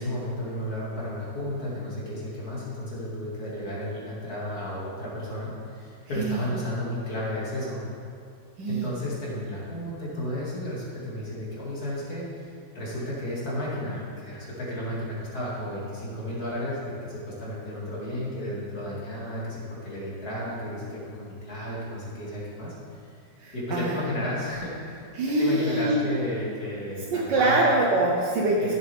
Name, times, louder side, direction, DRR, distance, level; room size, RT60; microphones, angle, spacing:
voice 1, 0.0-7.8 8.7-22.7 23.5-25.1 25.4-27.6 28.6-28.7, left 1 dB, 55° left, -7 dB, 3.0 m, -33 dB
voice 2, 6.2-6.5 8.6-8.8 23.4-24.0 25.1-26.0 26.4-26.5 27.1-28.7, right 2 dB, 80° right, -2 dB, 1.6 m, -24 dB
14.5 x 8.0 x 3.6 m, 2.4 s
omnidirectional pair, 1.9 m